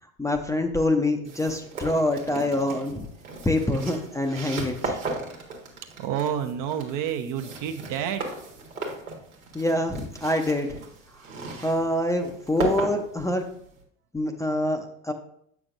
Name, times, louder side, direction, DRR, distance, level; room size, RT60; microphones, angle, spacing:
voice 1, 0.2-3.1 3.4-5.0 9.5-10.7 11.6-13.5 14.1-15.1, left 1 dB, 10° left, 4 dB, 0.6 m, -25 dB
sound 1, 1.3-13.8, right 2 dB, 85° right, 1.4 m, -36 dB
voice 2, 6.0-8.2, right 9 dB, 50° right, 7 dB, 0.8 m, -29 dB
7.8 x 6.0 x 2.6 m, 0.68 s
hypercardioid pair, 75°, 40 cm